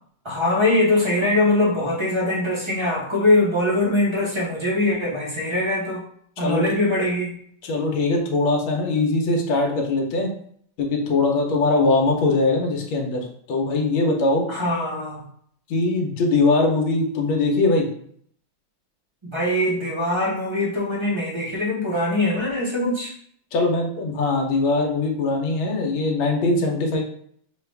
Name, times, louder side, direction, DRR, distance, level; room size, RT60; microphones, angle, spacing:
voice 1, 0.2-6.0 6.4-7.4 14.5-15.3 19.2-23.1, left 1 dB, 30° right, -3 dB, 0.5 m, -22 dB
voice 2, 7.6-10.3 10.8-14.4 15.7-17.9 23.5-27.0, left 3 dB, 80° left, 0 dB, 1.6 m, -21 dB
5.7 x 2.3 x 3.3 m, 0.63 s
omnidirectional pair, 2.2 m